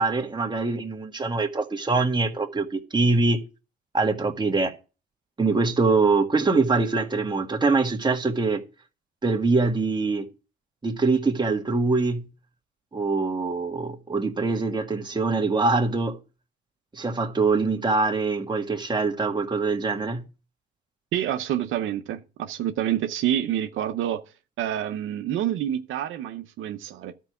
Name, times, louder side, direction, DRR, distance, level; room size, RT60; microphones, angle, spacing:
voice 1, 0.0-3.4 3.9-4.7 5.4-8.6 9.2-10.3 10.8-12.3 12.9-16.2 16.9-20.2, right 3 dB, 20° right, 1.7 m, -23 dB
voice 2, 21.1-24.2 24.6-27.1, right 11 dB, 85° right, 0.8 m, -27 dB
12.0 x 4.7 x 7.0 m
cardioid pair, 90°, 20 cm